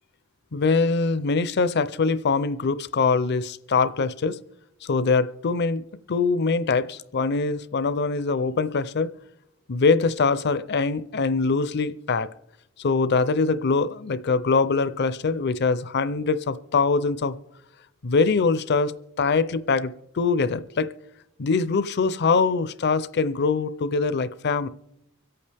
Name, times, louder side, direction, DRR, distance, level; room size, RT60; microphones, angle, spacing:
voice 1, 0.5-4.4 4.8-9.1 9.7-12.3 12.8-17.4 18.0-20.9 21.4-24.7, left 4 dB, 55° left, 0.5 m, -23 dB
25.0 x 8.5 x 3.4 m
head